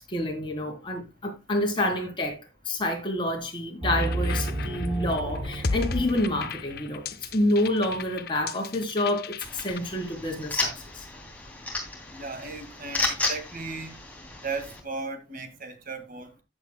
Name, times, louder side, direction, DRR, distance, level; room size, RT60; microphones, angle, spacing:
voice 1, 0.1-2.4 2.6-7.0 7.3-11.1, left 1 dB, 25° left, 3.5 m, -28 dB
sound 1, 3.8-7.2, right 1 dB, 30° right, 1.8 m, -32 dB
sound 2, 4.0-9.8, left 4 dB, 55° left, 0.8 m, -35 dB
sound 3, 9.4-14.8, left 2 dB, 10° left, 3.0 m, -33 dB
voice 2, 12.1-14.0 14.4-16.4, right 3 dB, 50° right, 1.9 m, -36 dB
15.0 x 8.3 x 2.2 m
head